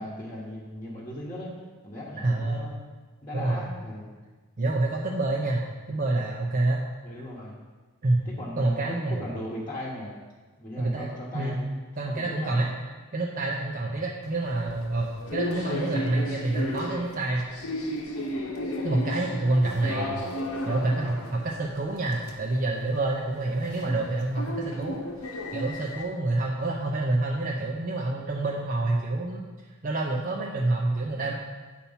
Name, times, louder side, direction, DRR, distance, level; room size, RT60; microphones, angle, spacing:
voice 1, 0.0-1.5 1.8-2.8 3.2-4.1 7.0-7.6 8.2-10.1 10.6-12.7 30.9-31.2, left 1 dB, 20° left, -8 dB, 1.1 m, -38 dB
voice 2, 2.2-2.7 3.3-3.7 4.6-6.9 8.0-8.2 8.6-9.2 10.8-11.1 11.3-11.6 12.0-12.7 13.1-17.4 18.8-20.2 20.7-25.0 25.5-29.5 29.8-31.3, right 2 dB, 40° right, -2 dB, 0.6 m, -27 dB
sound 1, 14.3-26.0, left 1 dB, 80° left, 1.0 m, -35 dB
8.3 x 4.2 x 5.6 m, 1.3 s
head